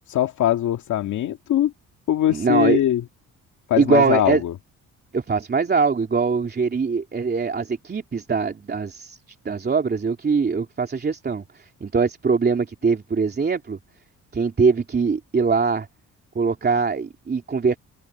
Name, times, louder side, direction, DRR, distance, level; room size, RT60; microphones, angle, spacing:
voice 1, 0.1-1.7 2.1-3.0 3.7-4.5, left 12 dB, 75° left, 2.2 m, -21 dB
voice 2, 2.3-2.8 3.8-4.4 5.1-9.2 9.4-13.8 14.3-15.9 16.3-17.8, right 5 dB, 35° right, 3.1 m, -22 dB
cardioid pair, 90°, 30 cm